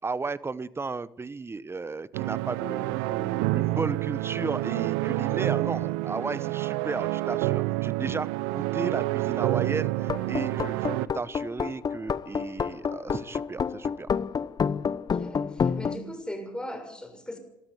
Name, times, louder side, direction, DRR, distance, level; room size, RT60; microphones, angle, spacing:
voice 1, 0.0-14.1, right 4 dB, 20° right, 18 dB, 1.0 m, -34 dB
sound 1, 2.1-11.1, right 18 dB, 85° right, 0.8 m, -28 dB
sound 2, 10.0-16.0, left 6 dB, 35° left, 0.9 m, -28 dB
voice 2, 15.1-17.4, equal, 5° left, 5 dB, 6.7 m, -38 dB
21.5 x 13.0 x 9.4 m, 0.86 s
supercardioid pair, 70°, 11 cm